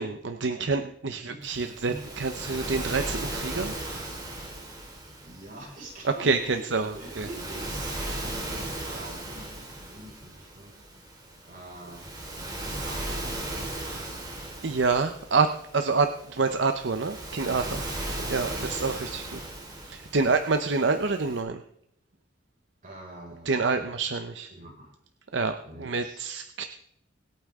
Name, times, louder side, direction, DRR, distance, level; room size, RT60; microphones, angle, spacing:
voice 1, 0.0-3.7 6.0-7.3 14.6-17.8 18.3-19.4 19.8-21.6 23.5-24.5 25.3-26.6, right 4 dB, 70° right, 7 dB, 0.8 m, -27 dB
Waves surf, 1.4-21.4, right 1 dB, 20° right, 3.0 m, -37 dB
voice 2, 5.2-6.3 6.9-10.7 11.0-11.1 11.4-12.1 12.8-13.5 17.7-17.9 18.5-18.7 22.8-24.0 24.5-24.9 25.6-26.3, right 1 dB, 45° right, -2 dB, 5.5 m, -45 dB
25.0 x 9.0 x 3.7 m, 0.74 s
head